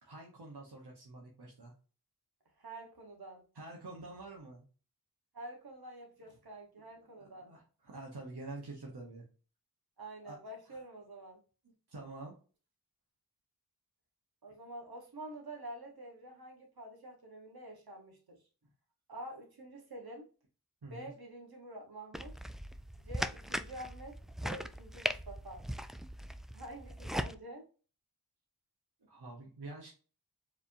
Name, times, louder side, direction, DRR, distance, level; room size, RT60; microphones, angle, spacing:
voice 1, 0.0-1.7 3.5-4.6 7.2-9.2 10.2-10.4 10.7-10.8 11.6-12.3 20.8-21.1 29.0-29.9, right 2 dB, 90° right, -2 dB, 1.2 m, -47 dB
voice 2, 2.6-3.4 5.3-7.5 10.0-11.4 14.4-18.4 19.1-20.3 20.9-22.4 23.0-25.6 26.5-27.7, right 1 dB, 70° right, 2 dB, 1.4 m, -48 dB
sound 1, 22.1-27.3, equal, ahead, 0.3 m, -39 dB
4.8 x 3.4 x 2.7 m, 0.36 s
wide cardioid pair, 45°, 38 cm